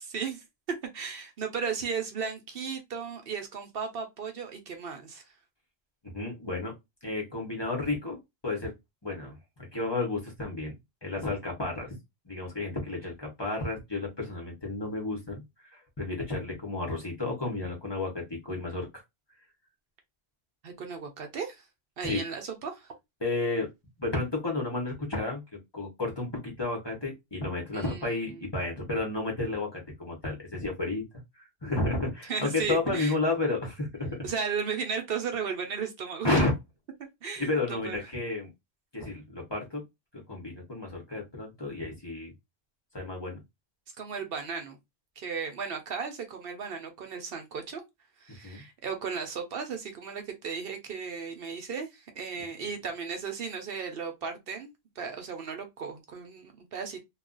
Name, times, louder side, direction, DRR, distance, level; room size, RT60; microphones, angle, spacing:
voice 1, 0.9-5.3 20.6-21.6 22.0-22.9 27.7-28.4 32.3-33.2 34.2-36.3 37.2-38.0 44.0-44.8 45.2-47.8 48.2-57.0, right 6 dB, 65° right, 0.8 m, -35 dB
voice 2, 6.0-6.7 7.0-8.2 8.4-8.7 9.0-9.4 9.7-10.7 11.0-11.9 12.3-19.0 22.0-22.2 23.2-23.7 24.0-25.4 25.7-31.0 31.6-34.3 36.2-36.5 37.4-38.5 38.9-39.8 40.3-42.3 42.9-43.4 48.4-48.6 52.4-52.5, left 2 dB, 25° left, 0.9 m, -31 dB
2.3 x 2.3 x 3.7 m
omnidirectional pair, 1.1 m